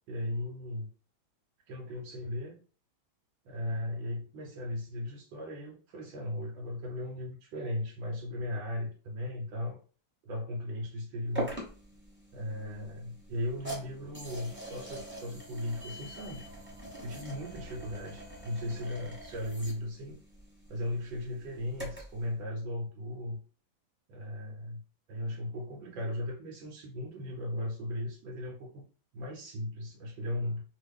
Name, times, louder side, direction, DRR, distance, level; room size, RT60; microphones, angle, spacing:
voice 1, 0.1-0.9 1.7-2.6 3.4-9.8 10.2-11.6 12.3-16.4 17.0-20.2 20.7-23.4 24.1-24.8 25.1-28.8 29.1-30.6, left 1 dB, 80° right, -1 dB, 1.4 m, -37 dB
sound 1, 11.4-22.2, right 1 dB, 10° right, 1.0 m, -43 dB
3.2 x 2.2 x 3.4 m, 0.38 s
omnidirectional pair, 2.1 m